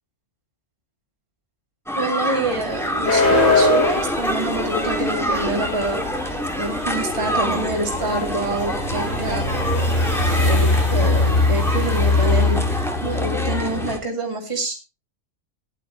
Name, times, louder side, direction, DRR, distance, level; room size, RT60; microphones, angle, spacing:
sound 1, 1.9-14.0, equal, ahead, 1.7 m, -27 dB
voice 1, 1.9-9.4 10.2-12.7 13.0-14.7, right 2 dB, 25° right, -1 dB, 2.6 m, -27 dB
Amtrak Pacific Surfliner Pass-by, 2.5-14.0, left 2 dB, 80° left, 2.9 m, -22 dB
16.5 x 11.0 x 2.8 m, 0.28 s
omnidirectional pair, 1.3 m